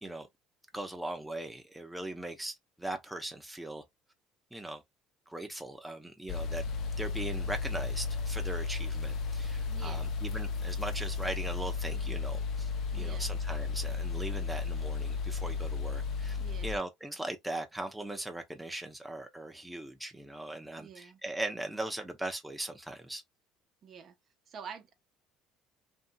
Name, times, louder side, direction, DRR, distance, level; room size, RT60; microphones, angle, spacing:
voice 1, 0.7-3.8 4.5-4.8 5.3-6.6 7.0-23.2, right 1 dB, 5° right, 0.6 m, -39 dB
sound 1, 6.3-16.8, left 4 dB, 55° left, 0.5 m, -34 dB
voice 2, 9.7-10.1 12.9-13.3 16.4-16.8 20.7-21.2 23.8-24.2 24.5-24.9, right 7 dB, 50° right, 0.8 m, -47 dB
2.7 x 2.7 x 2.2 m
supercardioid pair, 85°, 0 cm